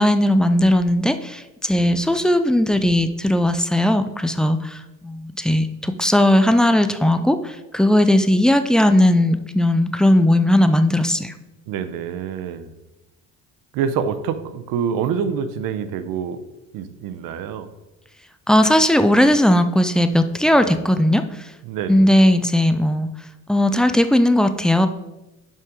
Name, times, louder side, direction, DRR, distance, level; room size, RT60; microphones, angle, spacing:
voice 1, 0.0-11.3 18.5-21.5 21.9-23.1 23.5-24.9, left 1 dB, ahead, 9 dB, 0.3 m, -17 dB
voice 2, 11.7-12.7 13.7-16.4 16.7-17.7 20.6-20.8 21.6-22.1, right 7 dB, 70° right, 11 dB, 0.7 m, -26 dB
5.5 x 5.2 x 4.8 m, 1.0 s
cardioid pair, 105°, 34 cm